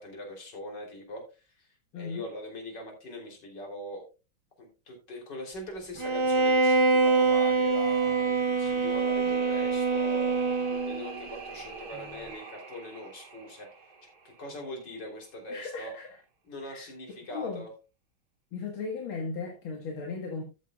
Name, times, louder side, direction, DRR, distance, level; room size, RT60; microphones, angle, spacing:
voice 1, 0.0-4.0 4.6-10.4 10.8-13.7 14.2-15.9 16.4-17.7, left 1 dB, 55° left, 4.1 m, -41 dB
Bowed string instrument, 6.0-11.1, right 4 dB, 35° right, 0.4 m, -25 dB
sound 1, 8.1-15.2, right 5 dB, 80° right, 2.9 m, -45 dB
voice 2, 15.5-16.1 16.6-16.9 17.3-17.6 18.5-20.4, left 4 dB, 75° left, 2.4 m, -36 dB
14.0 x 8.3 x 2.4 m
omnidirectional pair, 2.3 m